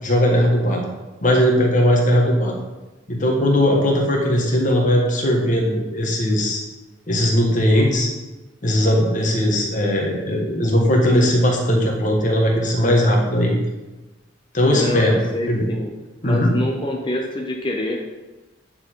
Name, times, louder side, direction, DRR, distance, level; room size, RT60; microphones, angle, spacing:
voice 1, 0.0-0.8 1.2-2.5 3.1-6.6 7.1-8.1 8.6-13.6 14.5-15.2 15.5-15.7 16.2-16.5, equal, 40° left, 0 dB, 1.5 m, -18 dB
voice 2, 14.7-15.9 16.2-18.0, left 1 dB, 25° left, 0 dB, 0.7 m, -26 dB
9.3 x 4.7 x 4.5 m, 1.1 s
head